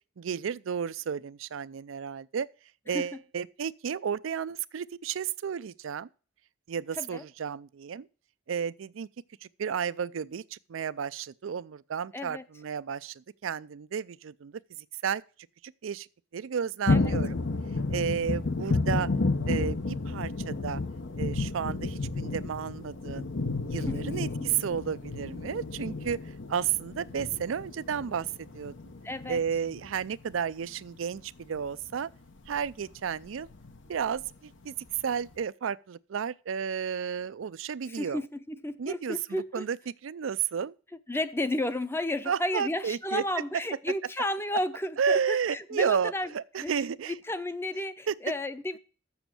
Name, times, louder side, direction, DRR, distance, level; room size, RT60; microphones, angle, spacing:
voice 1, 0.2-2.5 2.9-6.1 6.7-8.1 8.5-9.1 9.4-14.6 15.0-15.2 15.6-16.1 16.3-17.4 17.9-19.1 19.5-20.8 21.2-23.3 23.7-26.2 26.5-28.8 29.3-32.1 32.5-33.5 33.9-34.7 35.0-38.2 38.8-40.8 42.3-43.2 45.0-47.1 48.1-48.2, right 7 dB, 80° right, 0.4 m, -32 dB
voice 2, 12.1-12.4 16.9-17.1 23.9-24.5 29.0-29.4 37.9-39.7 41.1-46.3 46.6-48.8, left 1 dB, 10° left, 0.6 m, -33 dB
sound 1, 16.9-31.1 31.4-31.9 32.5-33.0 33.4-33.9 34.3-34.4 34.9-35.0, left 3 dB, 65° left, 0.9 m, -31 dB
7.2 x 7.0 x 7.5 m
head